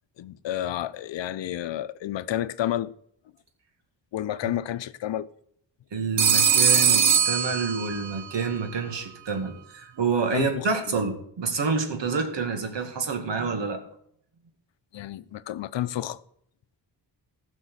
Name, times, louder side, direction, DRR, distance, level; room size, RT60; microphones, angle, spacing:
voice 1, 0.2-2.9 4.1-5.3 10.3-11.0 14.9-16.2, left 12 dB, 85° left, 0.7 m, -30 dB
voice 2, 5.9-13.8, right 5 dB, 80° right, 2.3 m, -28 dB
Telephone, 6.2-8.2, right 7 dB, 45° right, 0.8 m, -21 dB
16.0 x 6.2 x 6.3 m
wide cardioid pair, 120°, 43 cm